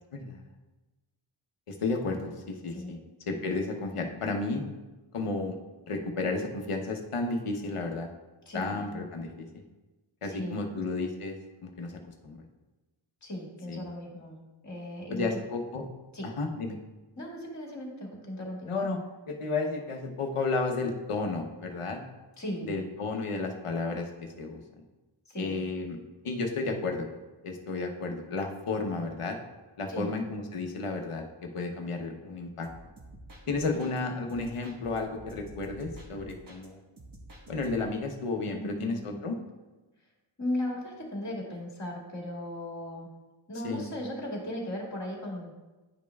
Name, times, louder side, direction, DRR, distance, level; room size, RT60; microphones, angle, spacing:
voice 1, 1.7-3.0 3.3-4.7 5.1-5.6 5.9-8.1 8.5-9.6 10.2-11.9 12.2-12.4 13.7-13.9 15.1-15.8 16.4-16.8 18.7-19.0 19.3-22.0 22.7-24.6 25.4-26.0 26.2-27.1 27.4-29.4 29.8-32.7 33.5-36.8 37.5-39.4 43.6-43.8, left 3 dB, 85° left, 3 dB, 0.9 m, -32 dB
voice 2, 8.5-8.8 10.3-10.8 13.2-14.4 14.6-15.4 16.1-16.3 17.2-18.7 22.4-22.8 25.3-25.6 29.9-30.1 33.7-33.9 38.5-39.2 40.4-43.1 43.5-45.5, left 1 dB, 35° left, -2 dB, 1.8 m, -37 dB
sound 1, 32.6-34.0 34.3-36.7 37.0-38.0, right 1 dB, 45° right, 1.2 m, -49 dB
10.5 x 5.2 x 2.3 m, 1.2 s
wide cardioid pair, 55°, 50 cm